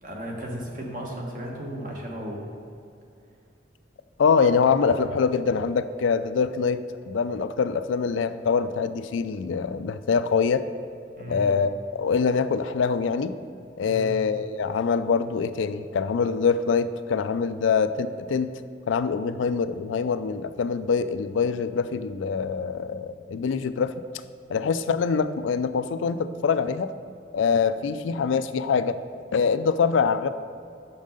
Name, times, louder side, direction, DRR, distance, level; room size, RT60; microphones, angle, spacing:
voice 1, 0.0-2.4 11.2-11.5 13.8-14.1, right 1 dB, 45° right, -1 dB, 1.2 m, -35 dB
voice 2, 4.2-10.6 11.3-13.4 13.8-18.5 18.9-23.9 24.5-26.9 27.3-29.0 29.3-30.3, left 5 dB, 90° left, 12 dB, 0.4 m, -24 dB
6.4 x 5.5 x 5.0 m, 2.5 s
head